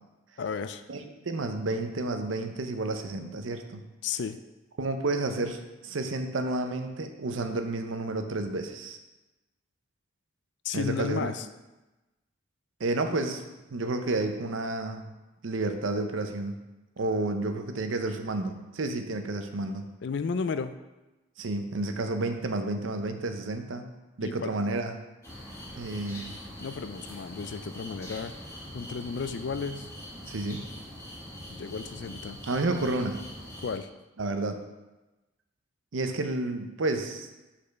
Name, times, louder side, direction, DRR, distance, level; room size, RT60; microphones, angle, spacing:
voice 1, 0.4-0.8 4.0-4.4 10.6-11.5 20.0-20.7 24.2-24.5 26.6-28.3 28.7-29.9 31.5-32.4 33.6-33.9, left 5 dB, 60° left, 11 dB, 0.4 m, -33 dB
voice 2, 0.9-3.8 4.8-9.0 10.7-11.3 12.8-13.4 13.7-15.1 15.4-16.5 17.0-19.8 21.4-23.9 24.2-24.9 25.7-26.4 30.3-30.6 32.5-33.2 34.2-34.6 35.9-37.3, right 2 dB, 80° right, 7 dB, 0.7 m, -30 dB
sound 1, 25.2-33.8, equal, 15° left, 1.6 m, -43 dB
5.2 x 4.3 x 5.7 m, 1.1 s
head